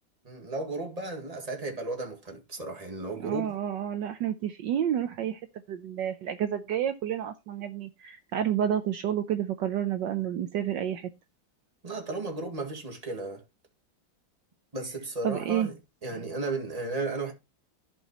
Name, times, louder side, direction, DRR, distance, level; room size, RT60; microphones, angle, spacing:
voice 1, 0.2-3.5 11.8-13.4 14.7-15.8 16.0-17.3, right 2 dB, 20° right, 1.9 m, -34 dB
voice 2, 3.2-5.4 5.7-11.1 15.2-15.7, right 10 dB, 70° right, 1.3 m, -30 dB
15.0 x 5.5 x 2.9 m
omnidirectional pair, 2.2 m